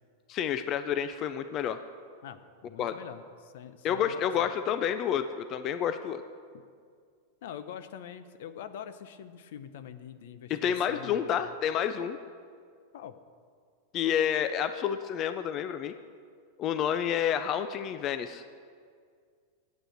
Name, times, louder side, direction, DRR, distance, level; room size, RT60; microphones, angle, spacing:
voice 1, 0.3-1.8 2.8-2.9 3.8-6.2 10.5-12.2 13.9-16.0 16.6-18.4, left 9 dB, 40° left, 10 dB, 0.5 m, -29 dB
voice 2, 2.2-4.3 6.5-6.6 7.4-11.3 12.9-13.1, left 9 dB, 70° left, 12 dB, 0.7 m, -44 dB
9.0 x 8.4 x 7.9 m, 2.1 s
hypercardioid pair, 120°, 0 cm